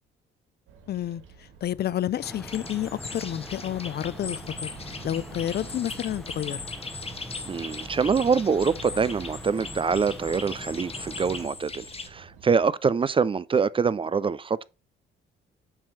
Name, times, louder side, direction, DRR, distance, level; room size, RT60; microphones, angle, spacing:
Bird vocalization bird call bird song, 0.7-12.7, right 5 dB, 85° right, 1.6 m, -49 dB
voice 1, 0.9-1.2 1.6-4.7 5.0-6.6, left 11 dB, 55° left, 0.5 m, -30 dB
sound 1, 2.2-11.5, equal, ahead, 0.9 m, -43 dB
sound 2, 2.4-12.1, left 4 dB, 30° left, 1.3 m, -39 dB
voice 2, 7.5-14.6, right 5 dB, 25° right, 0.4 m, -25 dB
7.3 x 3.1 x 6.1 m
cardioid pair, 90°, 20 cm